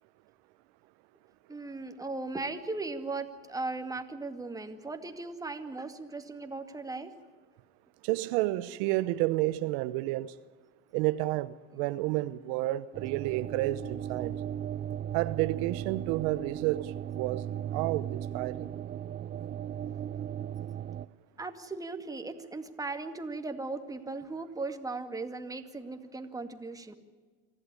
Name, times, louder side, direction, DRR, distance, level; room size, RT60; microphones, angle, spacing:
voice 1, 1.5-7.1 21.4-26.9, right 3 dB, 10° right, 2.1 m, -37 dB
voice 2, 8.0-10.3 10.9-14.3 15.1-18.7, right 17 dB, 75° right, 0.9 m, -30 dB
sound 1, 12.9-21.1, right 10 dB, 35° right, 0.7 m, -37 dB
24.5 x 15.0 x 9.8 m
supercardioid pair, 110°, 30 cm